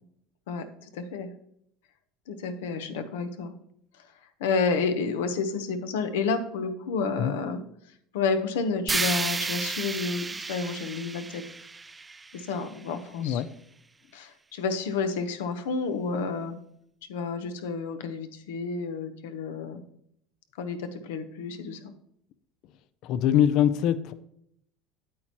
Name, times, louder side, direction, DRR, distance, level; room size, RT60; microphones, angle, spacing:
voice 1, 0.5-1.3 2.3-3.5 4.0-4.1 4.4-7.6 8.1-11.4 12.3-13.4 14.1-16.5 17.1-19.8 20.6-21.9, left 4 dB, 90° left, 8 dB, 0.9 m, -30 dB
sound 1, 8.9-13.0, right 4 dB, 15° right, 0.3 m, -32 dB
voice 2, 13.1-13.5 23.0-24.1, left 10 dB, 60° left, 15 dB, 0.5 m, -23 dB
8.6 x 8.4 x 3.0 m, 0.72 s
supercardioid pair, 115°, 0 cm